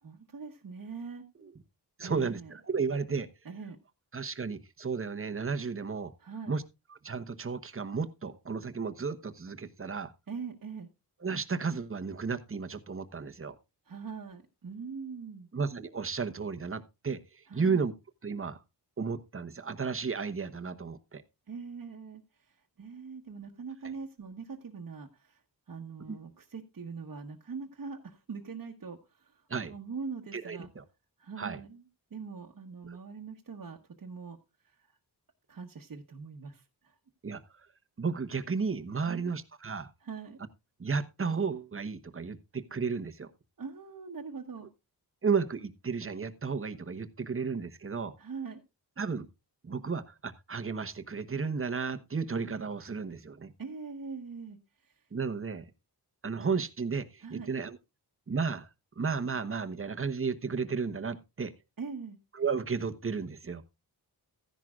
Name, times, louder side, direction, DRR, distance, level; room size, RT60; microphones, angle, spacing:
voice 1, 0.0-1.2 2.0-2.5 3.4-3.8 6.2-6.6 10.3-10.9 13.8-15.5 17.5-17.8 21.5-25.4 25.7-30.7 31.2-34.4 34.6-35.0 35.5-37.0 39.1-39.3 40.0-40.4 43.6-44.7 48.2-48.6 53.6-55.0 57.2-57.5 61.8-62.2, right 5 dB, 50° right, 1.3 m, -42 dB
voice 2, 2.0-3.3 4.1-6.1 6.5-6.6 7.0-10.1 11.2-13.6 15.5-17.9 18.2-18.6 19.0-21.2 26.1-26.2 29.5-29.7 30.3-30.8 31.4-31.6 32.9-33.0 37.2-37.4 38.0-39.9 40.8-43.3 45.2-48.1 49.0-49.3 49.6-53.5 55.1-55.7 56.2-57.8 58.3-58.7 59.0-61.5 62.3-63.6, right 5 dB, 30° right, 1.1 m, -33 dB
14.5 x 10.5 x 2.4 m
wide cardioid pair, 90°, 41 cm